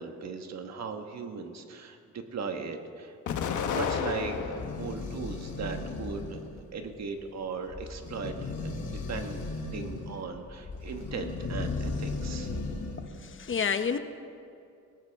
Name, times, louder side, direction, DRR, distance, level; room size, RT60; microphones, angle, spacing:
voice 1, 0.0-3.2 3.7-6.4 6.7-12.5, right 5 dB, 65° right, 5 dB, 1.5 m, -38 dB
Explosion, 3.3-4.9 5.4-6.3, left 6 dB, 80° left, 1.2 m, -32 dB
sound 1, 3.7-13.2, left 3 dB, 60° left, 3.6 m, -37 dB
voice 2, 13.0-14.0, left 6 dB, 40° left, 9 dB, 0.8 m, -30 dB
20.5 x 17.5 x 3.6 m, 2.5 s
cardioid pair, 110°, 29 cm